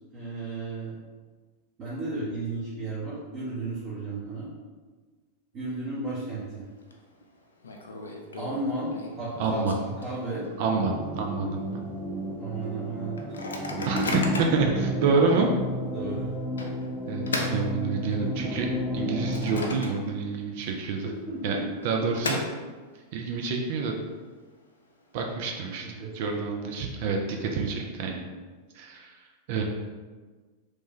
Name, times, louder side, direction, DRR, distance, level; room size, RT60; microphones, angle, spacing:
voice 1, 0.1-1.0 1.8-4.5 5.5-6.6 8.4-8.9 9.2-10.4 12.4-13.4 13.9-14.0 15.9-16.3 21.3-21.7 26.0-26.7, right 2 dB, 35° right, -9 dB, 0.8 m, -34 dB
Microwave oven, 6.4-6.9 7.2-7.3 7.6-10.7 11.1-11.2 11.5-11.8 12.3-12.4 13.2-14.7 15.3-15.4 16.6-18.4 18.8-20.3 20.6-20.7 21.6-23.0, left 2 dB, 70° left, 0.3 m, -36 dB
voice 2, 9.4-9.7 10.6-11.8 13.8-14.0 14.5-15.5 17.1-21.1 21.4-21.6 21.8-22.4 23.1-23.9 25.1-28.2 28.7-29.1 29.5-29.6, right 4 dB, 50° right, 2 dB, 0.3 m, -28 dB
sound 1, 10.7-19.7, equal, ahead, 0.5 m, -32 dB
3.0 x 2.2 x 2.9 m, 1.4 s
figure-of-eight pair, 90°, 0 cm